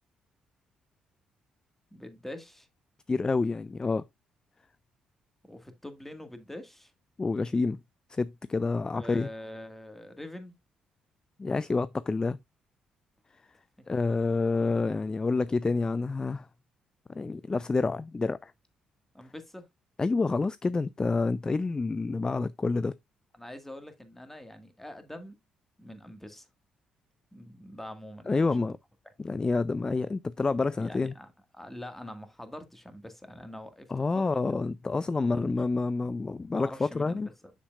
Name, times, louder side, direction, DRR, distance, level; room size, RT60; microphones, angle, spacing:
voice 1, 1.9-2.7 5.5-6.9 8.9-10.5 19.1-19.6 23.3-25.4 25.8-26.5 27.3-28.5 30.8-31.3 31.5-34.4 35.2-35.5 36.5-37.5, left 1 dB, 10° left, 1.7 m, -44 dB
voice 2, 3.1-4.0 7.2-7.8 8.1-9.3 11.4-12.4 13.9-16.5 17.1-18.5 20.0-23.0 28.3-28.8 29.2-31.1 33.9-37.3, left 3 dB, 25° left, 0.3 m, -28 dB
7.4 x 6.8 x 2.4 m
hypercardioid pair, 50°, 3 cm